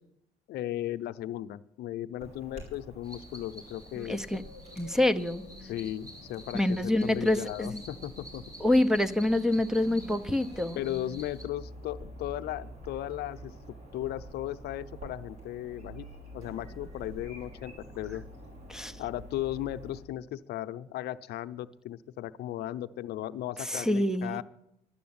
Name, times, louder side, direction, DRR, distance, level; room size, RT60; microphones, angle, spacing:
voice 1, 0.5-4.2 5.6-8.4 10.8-13.5 13.9-16.1 16.3-18.2 19.0-24.4, left 13 dB, 75° left, 12 dB, 0.7 m, -36 dB
Chirp tweet / Buzz, 2.2-20.0, right 1 dB, 40° right, 5.9 m, -48 dB
sound 1, 3.0-11.4, equal, 20° right, 3.8 m, -48 dB
voice 2, 4.0-4.4 4.8-5.4 6.5-7.8 8.6-10.8 18.7-18.9 23.7-24.4, left 1 dB, 5° right, 14 dB, 0.8 m, -26 dB
12.0 x 11.5 x 8.7 m, 0.81 s
cardioid pair, 110°, 17 cm